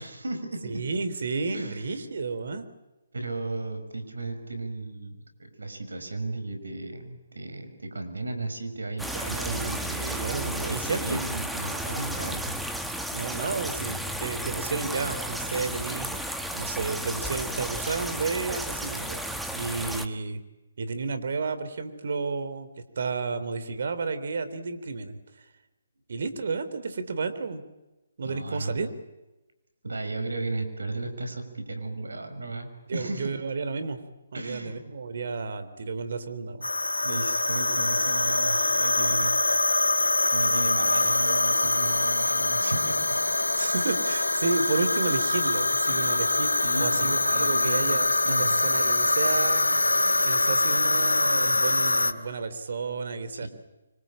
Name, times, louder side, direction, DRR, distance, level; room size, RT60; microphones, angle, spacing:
voice 1, 0.0-0.8 1.5-1.9 3.1-12.6 28.2-28.8 29.8-33.3 34.3-34.8 37.0-39.4 40.3-43.1 45.9-46.2 46.6-48.6 53.3-53.5, right 2 dB, 80° right, 8 dB, 6.1 m, -35 dB
voice 2, 0.6-2.7 9.1-11.2 13.1-19.2 19.5-20.4 20.8-22.7 23.0-25.2 26.1-27.6 28.2-28.9 32.9-34.0 34.3-36.6 43.6-49.8 50.2-53.5, right 4 dB, 60° right, 11 dB, 3.5 m, -32 dB
sound 1, 9.0-20.1, right 1 dB, ahead, 1.5 m, -33 dB
sound 2, 36.6-52.1, left 2 dB, 90° left, 1.9 m, -24 dB
25.5 x 25.5 x 8.8 m, 1.0 s
figure-of-eight pair, 140°, 0 cm